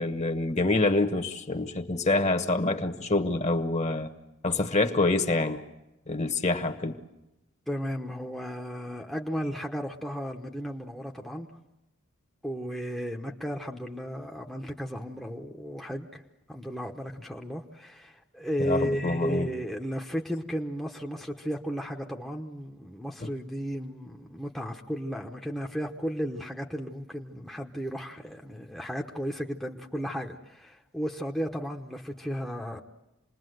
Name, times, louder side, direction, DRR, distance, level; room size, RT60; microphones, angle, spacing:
voice 1, 0.0-4.1 4.4-5.6 6.1-7.0 18.6-19.5, left 2 dB, 35° left, 7 dB, 1.3 m, -26 dB
voice 2, 7.7-11.5 12.4-16.2 16.5-32.8, equal, ahead, 0 dB, 1.0 m, -34 dB
27.5 x 20.5 x 7.9 m, 0.96 s
head